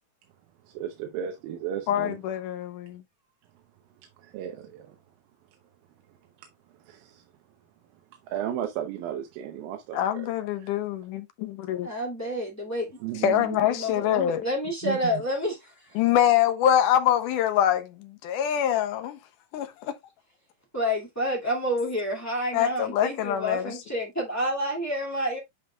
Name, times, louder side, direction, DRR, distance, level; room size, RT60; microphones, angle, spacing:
voice 1, 0.6-2.2 4.2-5.0 6.8-7.2 8.2-10.3 10.6-10.7 13.0-13.6 14.8-15.2, right 10 dB, 85° right, 2.7 m, -34 dB
voice 2, 1.9-3.0 9.9-11.9 13.2-14.4 16.0-19.2 19.5-19.9 22.5-23.7, left 10 dB, 80° left, 2.0 m, -25 dB
voice 3, 11.7-12.9 13.6-16.0 20.7-25.4, equal, 5° left, 1.2 m, -29 dB
8.6 x 5.4 x 2.3 m
omnidirectional pair, 4.1 m